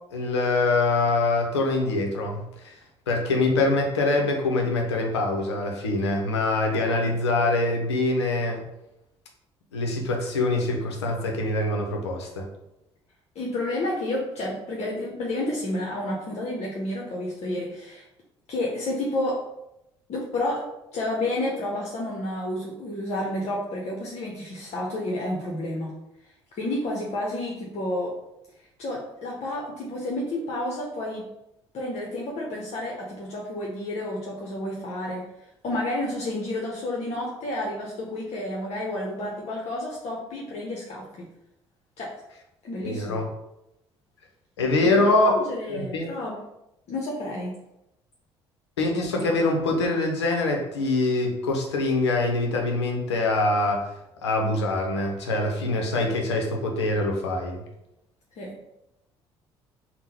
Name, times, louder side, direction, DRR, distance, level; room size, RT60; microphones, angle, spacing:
voice 1, 0.1-2.8 3.1-8.6 9.7-12.5 42.8-43.3 44.6-45.4 45.7-46.1 48.8-53.9 54.2-57.6, left 2 dB, 85° left, 2 dB, 0.6 m, -24 dB
voice 2, 13.4-18.0 18.5-19.4 20.1-20.6 20.9-25.9 26.5-28.1 28.8-31.3 31.7-35.2 35.6-41.2 42.0-42.1 42.6-43.2 44.9-46.4 46.9-47.5 58.4-58.5, left 1 dB, 50° left, -3 dB, 0.8 m, -30 dB
3.7 x 2.1 x 4.2 m, 0.86 s
hypercardioid pair, 55°, 14 cm